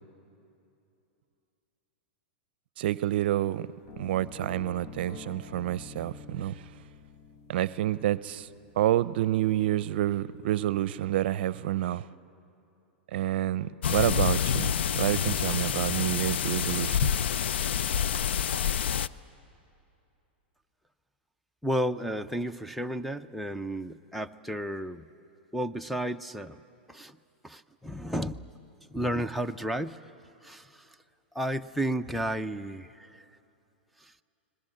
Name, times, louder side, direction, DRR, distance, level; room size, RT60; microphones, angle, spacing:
voice 1, 2.8-3.7 4.0-6.6 7.5-8.5 8.8-12.0 13.1-17.1, right 13 dB, 65° right, 0.6 m, -28 dB
sound 1, 3.8-11.7, left 4 dB, 45° left, 1.6 m, -49 dB
sound 2, 13.8-19.1, left 8 dB, 80° left, 0.5 m, -27 dB
voice 2, 21.6-25.1 25.5-26.6 26.9-27.2 27.4-28.5 28.9-30.1 30.4-30.9 31.3-33.2 34.0-34.1, equal, ahead, 0.5 m, -32 dB
29.5 x 20.5 x 8.6 m
hypercardioid pair, 120°, 6 cm